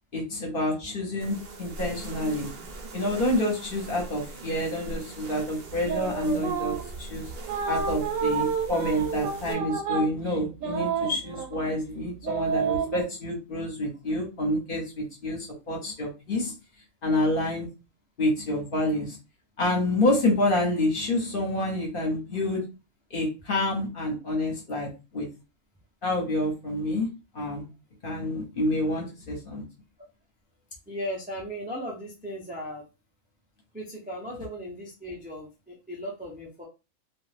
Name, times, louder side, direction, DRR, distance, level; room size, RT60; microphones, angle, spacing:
voice 1, 0.1-2.5 2.9-7.3 7.7-16.5 17.0-17.7 18.2-19.2 19.6-22.6 23.1-25.3 26.0-27.1 27.3-27.7 28.0-29.6, left 1 dB, 45° left, -1 dB, 1.0 m, -28 dB
sound 1, 1.2-9.5, right 2 dB, 55° right, 0.8 m, -41 dB
sound 2, 5.8-7.0 7.5-11.7 12.2-13.0, right 6 dB, 75° right, 1.1 m, -29 dB
voice 2, 30.9-32.8 33.7-36.6, equal, 15° right, -2 dB, 0.3 m, -37 dB
2.4 x 2.3 x 3.3 m, 0.29 s
omnidirectional pair, 1.4 m